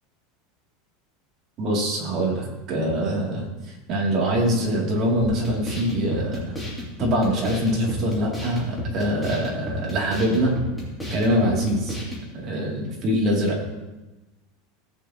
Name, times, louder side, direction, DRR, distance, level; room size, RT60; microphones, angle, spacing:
voice 1, 1.6-6.6 7.0-10.6 11.1-12.0 12.4-13.6, equal, 30° right, -2 dB, 2.7 m, -24 dB
sound 1, 5.2-12.3, equal, 5° left, 2.7 m, -32 dB
17.5 x 8.8 x 2.9 m, 1.1 s
supercardioid pair, 175°, 0 cm